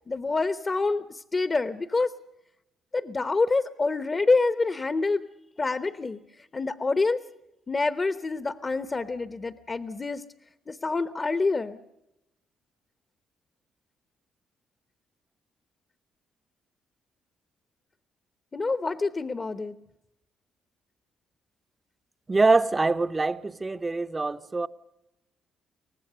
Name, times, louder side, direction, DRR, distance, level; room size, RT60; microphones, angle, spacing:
voice 1, 0.1-2.1 2.9-5.2 5.6-6.2 6.5-7.2 7.7-10.2 10.7-11.8 18.5-19.8, left 3 dB, 30° left, 0.9 m, -26 dB
voice 2, 22.3-24.7, right 3 dB, 25° right, 0.8 m, -24 dB
24.0 x 18.5 x 6.8 m
cardioid pair, 90°, 0 cm